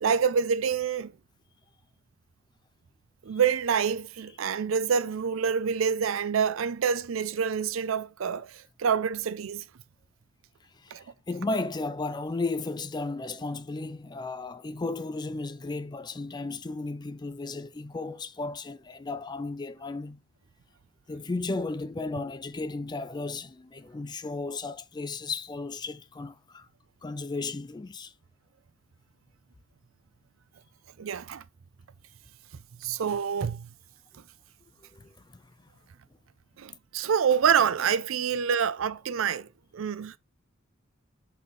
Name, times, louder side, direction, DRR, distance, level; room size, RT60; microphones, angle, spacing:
voice 1, 0.0-1.1 3.2-9.6 10.9-11.0 31.0-31.4 32.8-33.7 36.6-40.2, right 7 dB, 85° right, 0.5 m, -27 dB
voice 2, 10.8-20.2 21.1-26.7 27.0-28.1 34.9-35.4, left 3 dB, 20° left, 0.4 m, -34 dB
5.3 x 4.2 x 4.7 m
head